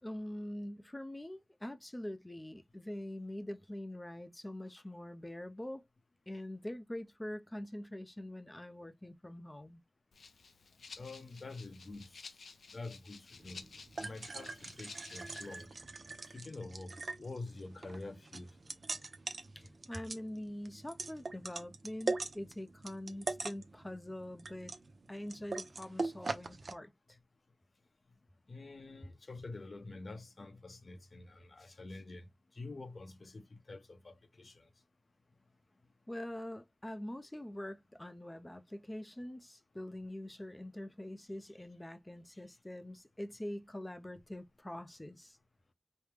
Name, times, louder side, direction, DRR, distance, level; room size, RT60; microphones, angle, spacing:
voice 1, 0.0-5.9 6.3-9.8 19.6-24.7 25.1-27.2 36.1-45.4, left 1 dB, 15° left, 0.5 m, -44 dB
Rattle (instrument), 10.1-15.6, left 4 dB, 85° left, 0.5 m, -53 dB
voice 2, 11.0-12.3 12.7-15.8 16.2-18.5 28.5-34.7 42.3-42.4, left 3 dB, 50° left, 0.7 m, -47 dB
sound 1, 13.4-26.7, right 3 dB, 55° right, 0.6 m, -42 dB
4.8 x 2.1 x 3.3 m
wide cardioid pair, 85°, 0 cm